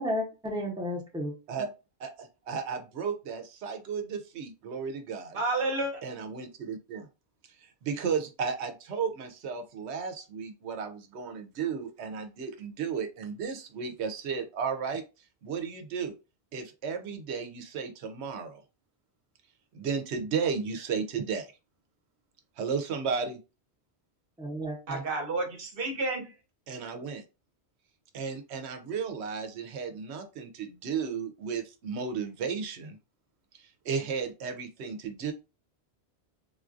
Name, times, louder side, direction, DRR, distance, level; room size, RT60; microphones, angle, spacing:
voice 1, 0.0-1.3 24.4-25.1, equal, 5° right, 0.8 m, -33 dB
voice 2, 2.0-5.4 6.0-7.1 7.6-15.0 15.4-16.1 16.5-18.6 19.7-21.5 22.6-23.4 26.7-27.2 28.1-33.0 33.6-35.3, right 6 dB, 85° right, 0.9 m, -34 dB
voice 3, 5.3-6.0 24.9-26.3, right 2 dB, 60° right, 1.0 m, -30 dB
3.8 x 2.4 x 2.5 m
omnidirectional pair, 1.1 m